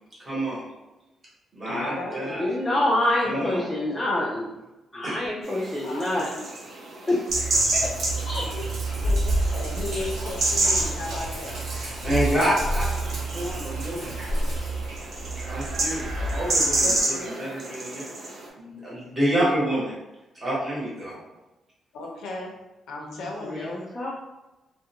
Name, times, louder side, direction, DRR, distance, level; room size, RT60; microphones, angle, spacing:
voice 1, 0.2-0.6 1.5-2.5 3.2-3.6 5.0-5.2 12.0-14.1 15.4-18.0 18.6-19.9 20.4-21.2, equal, 25° right, -7 dB, 1.0 m, -28 dB
voice 2, 1.7-2.9 3.3-3.9 5.8-6.1 8.3-8.7 9.0-9.2 9.5-11.6 16.8-17.5 21.9-22.5 22.9-23.9, left 2 dB, 75° left, 0 dB, 0.5 m, -36 dB
voice 3, 2.3-4.5 4.9-6.3 7.1-8.4 23.4-24.1, left 1 dB, 15° left, -6 dB, 0.4 m, -27 dB
sound 1, 5.5-18.5, right 2 dB, 50° right, 0.5 m, -29 dB
Sink (filling or washing), 7.3-17.0, right 2 dB, 90° right, 0.8 m, -29 dB
2.4 x 2.1 x 2.8 m, 1.0 s
cardioid pair, 155°, 0 cm